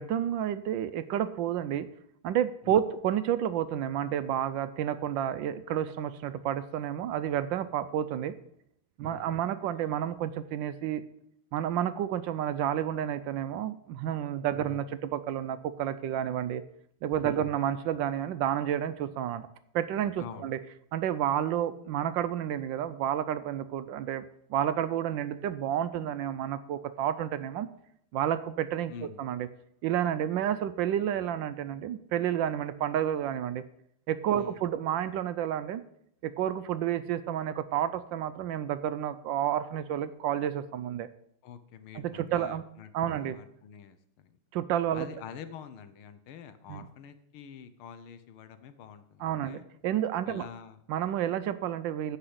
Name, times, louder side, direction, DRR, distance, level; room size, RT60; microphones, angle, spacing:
voice 1, 0.0-1.9 2.2-8.3 9.0-11.0 11.5-16.6 17.0-19.5 19.7-20.6 20.9-24.2 24.5-27.7 28.1-28.9 29.2-29.5 29.8-33.6 34.1-35.8 36.2-41.1 41.9-42.6 42.9-43.4 44.5-45.1 46.7-46.9 49.2-50.4 50.9-52.2, right 10 dB, 75° right, 13 dB, 1.2 m, -30 dB
voice 2, 14.5-14.8 17.2-17.5 20.2-20.5 28.9-29.2 34.3-34.6 41.4-44.4 44.9-49.7 50.3-50.8, left 8 dB, 80° left, 11 dB, 1.8 m, -46 dB
9.9 x 5.7 x 7.9 m, 0.72 s
omnidirectional pair, 2.3 m